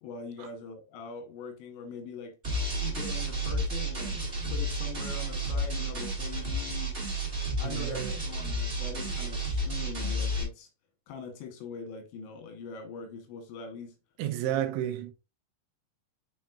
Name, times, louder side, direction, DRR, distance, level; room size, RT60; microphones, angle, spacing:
voice 1, 0.0-2.4 2.8-7.0 7.6-10.7 11.1-14.0, left 5 dB, 80° left, 3.5 m, -42 dB
sound 1, 2.4-10.4, right 1 dB, 15° right, 2.8 m, -31 dB
voice 2, 7.6-8.1 14.2-15.1, right 11 dB, 80° right, 3.0 m, -31 dB
7.2 x 6.2 x 2.5 m
omnidirectional pair, 5.3 m